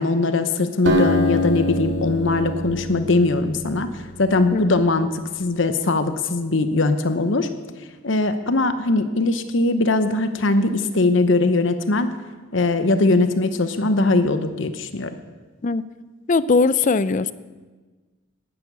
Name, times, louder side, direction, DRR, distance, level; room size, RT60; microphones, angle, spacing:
voice 1, 0.0-7.5 8.0-12.1 12.5-15.1, left 2 dB, 65° left, 10 dB, 0.9 m, -20 dB
Acoustic guitar, 0.9-4.4, equal, 60° right, 2.2 m, -25 dB
voice 2, 16.3-17.3, left 4 dB, 40° left, 16 dB, 0.5 m, -19 dB
12.5 x 11.0 x 8.1 m, 1.3 s
head